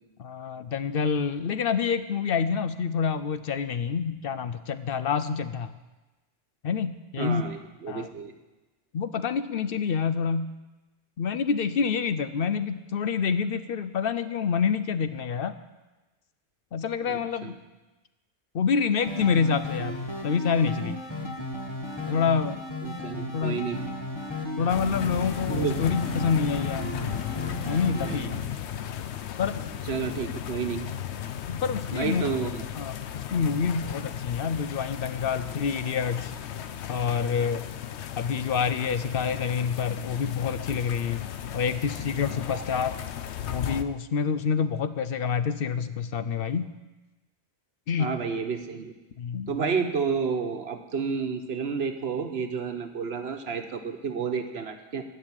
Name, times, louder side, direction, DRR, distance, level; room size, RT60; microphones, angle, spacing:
voice 1, 0.2-5.7 6.6-7.4 7.9-8.1 8.9-10.5 11.2-15.5 16.7-17.6 18.5-21.0 22.1-22.6 23.3-23.6 24.6-26.9 27.7-28.4 29.4-29.7 31.5-32.3 32.8-36.3 36.9-37.6 38.2-41.2 41.5-43.0 43.5-46.7 47.9-48.2 49.2-49.5, left 6 dB, 60° left, 12 dB, 0.8 m, -27 dB
voice 2, 7.2-8.3 17.0-17.5 22.8-23.8 25.5-25.8 27.9-28.4 29.9-30.8 31.9-32.6 48.0-48.9 49.5-55.0, right 5 dB, 70° right, 6 dB, 1.3 m, -30 dB
sound 1, 19.0-28.1, left 1 dB, 25° left, 1.8 m, -35 dB
sound 2, 24.7-43.8, left 9 dB, 85° left, 1.0 m, -35 dB
16.0 x 5.4 x 9.7 m, 1.1 s
omnidirectional pair, 1.1 m